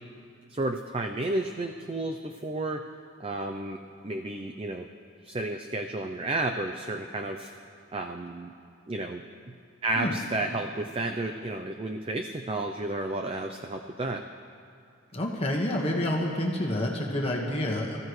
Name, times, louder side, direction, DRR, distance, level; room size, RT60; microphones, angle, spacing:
voice 1, 0.5-2.8 3.2-3.8 4.0-4.9 5.2-7.5 7.9-8.5 8.9-9.2 9.8-14.2, right 2 dB, 25° right, 4 dB, 0.5 m, -32 dB
voice 2, 15.1-18.0, left 1 dB, 30° left, -1 dB, 1.5 m, -28 dB
26.0 x 15.0 x 3.2 m, 2.4 s
head